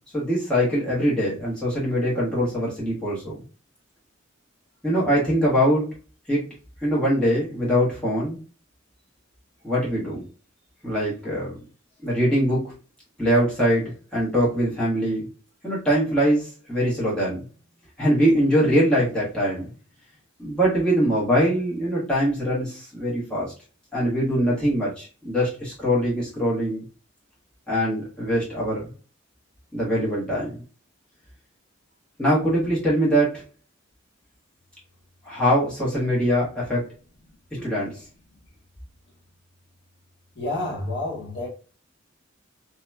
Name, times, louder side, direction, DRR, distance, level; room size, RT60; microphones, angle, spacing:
voice 1, 0.1-3.4 4.8-5.8 6.3-6.4 6.8-8.4 9.6-10.2 10.8-11.6 12.0-12.7 13.2-15.3 15.6-17.4 18.0-19.7 20.4-23.5 23.9-26.8 27.7-28.9 29.7-30.6 32.2-33.4 35.2-36.8 37.6-38.0, equal, 5° left, 1.3 m, -23 dB
voice 2, 40.4-41.5, left 2 dB, 60° left, 0.8 m, -29 dB
2.9 x 2.9 x 2.2 m
head